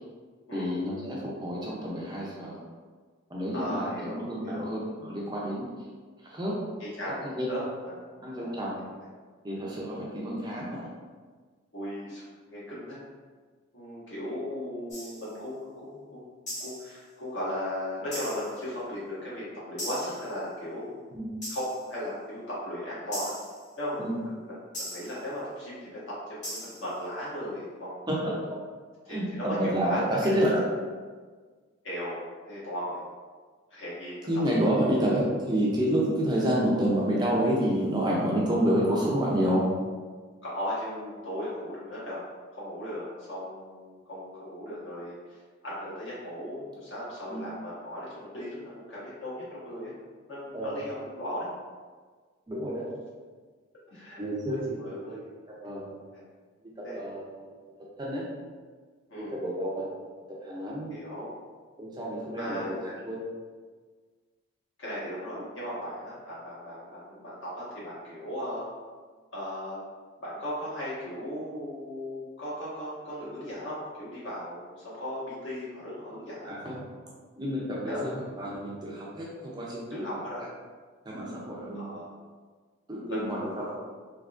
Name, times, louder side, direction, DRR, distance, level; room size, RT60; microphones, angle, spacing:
voice 1, 0.5-2.6 3.3-5.7 6.2-6.6 7.2-7.6 8.2-8.8 9.4-10.9 21.1-21.3 24.0-24.1 28.1-28.3 29.1-30.6 34.3-39.7 47.3-47.4 50.5-50.7 52.5-52.9 54.2-54.8 55.1-55.2 55.6-55.9 56.6-57.6 58.0-58.3 59.2-59.8 60.4-60.9 61.8-63.3 65.4-65.5 76.4-76.8 77.4-80.1 81.0-81.9 82.9-83.8, equal, 20° right, -5 dB, 0.5 m, -29 dB
voice 2, 3.5-4.7 6.8-8.0 8.4-8.6 11.7-13.0 13.7-15.6 15.8-16.2 16.6-23.3 23.8-28.4 29.0-30.3 31.8-32.2 32.5-33.0 33.7-34.3 40.4-42.2 42.5-45.1 45.6-49.9 50.3-51.5 53.9-54.2 54.5-55.2 56.1-56.2 56.8-57.0 59.1-59.3 60.9-61.3 62.4-62.7 64.8-68.6 69.3-69.8 70.2-76.5 77.9-78.1 79.9-80.4 81.8-82.1 83.1-83.3, equal, 65° left, -8 dB, 1.3 m, -37 dB
sound 1, 14.9-15.3 16.5-17.0 18.1-18.6 19.8-20.3 21.4-21.9 23.1-23.6 24.7-25.2 26.4-27.0, equal, 35° left, 1.3 m, -39 dB
3.5 x 2.9 x 2.4 m, 1.5 s
head